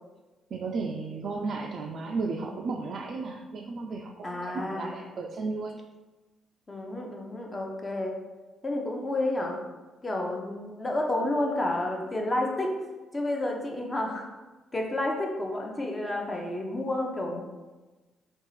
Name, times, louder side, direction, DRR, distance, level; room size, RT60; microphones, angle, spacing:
voice 1, 0.5-5.8, right 3 dB, 60° right, 0 dB, 0.3 m, -34 dB
voice 2, 4.2-5.0 6.7-8.1 8.6-9.6 10.0-12.8 13.1-14.3 14.7-17.4, left 1 dB, 25° left, 0 dB, 0.7 m, -30 dB
3.6 x 2.4 x 3.1 m, 1.2 s
cardioid pair, 90°, 0 cm